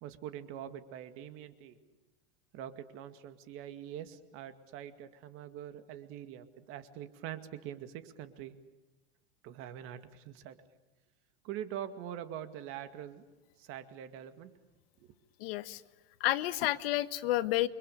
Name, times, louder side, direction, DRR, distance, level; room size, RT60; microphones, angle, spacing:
voice 1, 0.0-1.8 2.5-8.6 9.4-10.6 11.4-13.2 13.6-14.5 15.0-15.1, right 10 dB, 40° right, 9 dB, 2.2 m, -44 dB
voice 2, 15.4-15.8 16.2-17.7, left 16 dB, 60° left, 12 dB, 1.5 m, -30 dB
29.5 x 24.5 x 6.8 m, 1.1 s
supercardioid pair, 155°, 33 cm